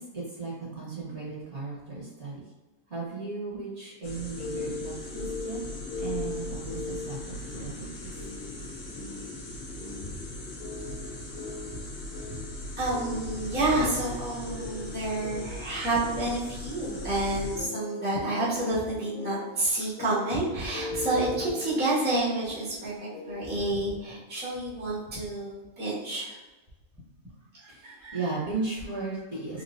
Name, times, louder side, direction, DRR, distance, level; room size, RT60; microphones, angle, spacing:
voice 1, 0.0-2.4 2.9-5.6 6.0-8.1 10.0-10.1 27.7-29.6, right 3 dB, 50° right, -6 dB, 1.6 m, -36 dB
sound 1, 4.0-17.6, left 1 dB, 50° left, 0.8 m, -39 dB
sound 2, 4.1-23.7, left 3 dB, 75° left, 1.1 m, -40 dB
voice 2, 12.8-22.9 23.2-26.4 27.5-28.2, right 2 dB, 10° right, -8 dB, 0.9 m, -29 dB
3.8 x 2.8 x 2.5 m, 1.2 s
omnidirectional pair, 1.5 m